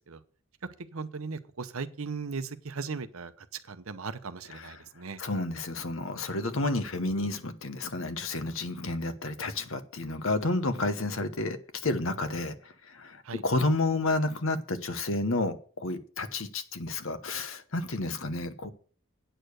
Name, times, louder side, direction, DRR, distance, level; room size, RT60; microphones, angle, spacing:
voice 1, 0.9-5.2 13.2-13.4, right 4 dB, 75° right, 12 dB, 0.8 m, -38 dB
voice 2, 5.2-12.5 12.9-18.7, left 2 dB, 65° left, 10 dB, 1.0 m, -30 dB
9.0 x 6.7 x 6.5 m, 0.43 s
head